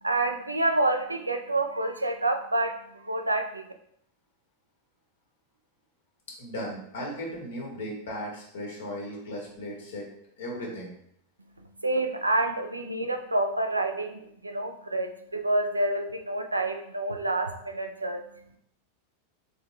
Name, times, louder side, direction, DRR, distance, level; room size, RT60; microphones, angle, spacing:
voice 1, 0.0-3.7 11.8-18.2, right 2 dB, 85° right, 5 dB, 0.4 m, -28 dB
voice 2, 6.4-10.0 10.4-10.9, equal, 65° left, -2 dB, 1.5 m, -36 dB
3.8 x 3.6 x 3.2 m, 0.72 s
figure-of-eight pair, 90°, 0 cm